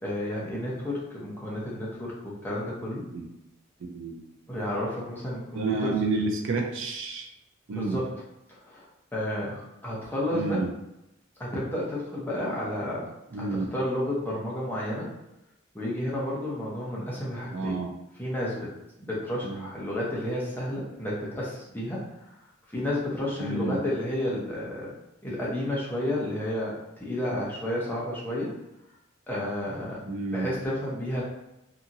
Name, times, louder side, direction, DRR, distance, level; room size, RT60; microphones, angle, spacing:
voice 1, 0.0-3.1 4.5-6.0 7.7-8.1 8.5-10.6 11.4-13.1 13.4-15.1 15.7-17.8 18.2-18.7 19.0-22.3 22.7-24.9 25.2-28.5 29.3-31.2, left 1 dB, 10° left, -6 dB, 0.7 m, -31 dB
voice 2, 3.8-4.2 5.5-7.3 7.7-8.0 10.3-10.7 13.3-13.7 17.5-17.9 19.4-19.7 23.4-23.8 30.0-30.5, right 3 dB, 60° right, 2 dB, 0.4 m, -30 dB
2.8 x 2.7 x 2.5 m, 0.89 s
head